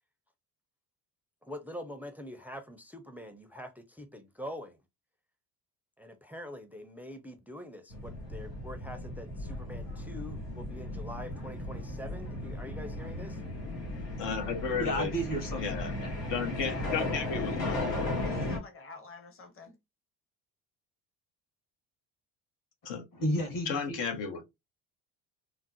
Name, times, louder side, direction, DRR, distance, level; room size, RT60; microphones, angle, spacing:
voice 1, 1.4-4.8 6.0-13.4, left 1 dB, 5° right, 0.6 m, -44 dB
sound 1, 7.9-18.6, left 1 dB, 85° left, 1.7 m, -36 dB
voice 2, 14.2-15.1 15.6-16.0 16.3-18.1 22.8-23.0 23.7-24.5, left 6 dB, 65° left, 1.1 m, -34 dB
voice 3, 14.8-16.3 23.2-24.0, equal, 45° left, 1.6 m, -33 dB
voice 4, 16.5-17.9 18.2-19.8, left 4 dB, 25° left, 1.0 m, -48 dB
3.8 x 2.0 x 2.9 m
hypercardioid pair, 60°, 47 cm